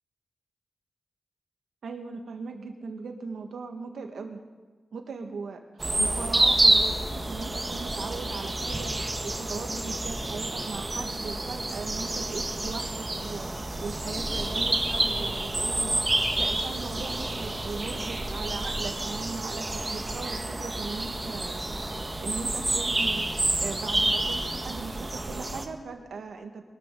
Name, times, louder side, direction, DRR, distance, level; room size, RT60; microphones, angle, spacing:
voice 1, 1.8-4.4 4.9-5.6 6.0-23.3 23.6-26.6, right 4 dB, 85° right, 4 dB, 1.7 m, -39 dB
sound 1, 5.8-25.6, right 2 dB, 30° right, 1.7 m, -28 dB
22.5 x 12.5 x 3.9 m, 1.3 s
cardioid pair, 60°, 0 cm